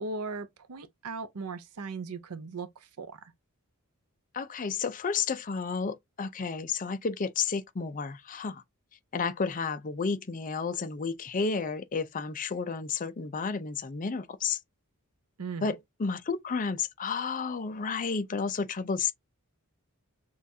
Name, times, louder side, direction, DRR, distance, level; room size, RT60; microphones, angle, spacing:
voice 1, 0.0-3.3 15.4-15.7, right 4 dB, 85° right, 0.6 m, -38 dB
voice 2, 4.3-8.6 9.1-14.6 15.6-19.1, left 5 dB, 35° left, 0.5 m, -31 dB
6.1 x 2.4 x 2.7 m
head